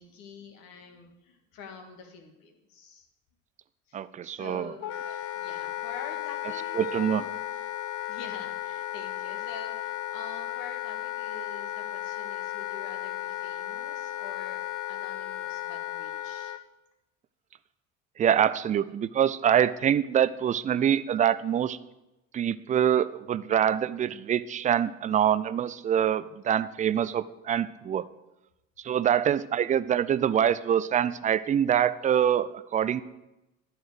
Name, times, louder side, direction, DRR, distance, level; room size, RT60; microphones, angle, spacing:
voice 1, 0.0-3.1 3.9-7.4 8.1-14.6 14.9-16.6, left 4 dB, 60° left, 5 dB, 1.8 m, -47 dB
voice 2, 3.9-4.7 6.8-7.2 18.2-21.8 22.3-28.0 28.8-33.0, right 9 dB, 20° right, 16 dB, 0.4 m, -25 dB
Wind instrument woodwind instrument, 4.8-16.6, left 14 dB, 40° left, 0.6 m, -35 dB
11.0 x 4.9 x 7.9 m, 0.97 s
figure-of-eight pair, 60°, 39 cm